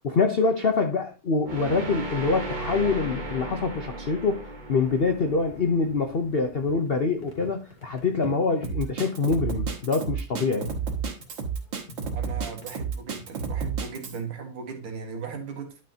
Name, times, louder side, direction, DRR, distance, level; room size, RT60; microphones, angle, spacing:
voice 1, 0.0-10.7, left 4 dB, 80° left, 0.5 m, -25 dB
sound 1, 1.4-6.5, right 2 dB, 30° right, 1.0 m, -36 dB
sound 2, 4.8-13.2, left 4 dB, 20° left, 1.9 m, -47 dB
Drum kit, 8.6-14.2, right 6 dB, 65° right, 2.3 m, -31 dB
voice 2, 12.1-15.8, right 5 dB, 80° right, 2.5 m, -37 dB
11.0 x 6.4 x 2.8 m
omnidirectional pair, 2.3 m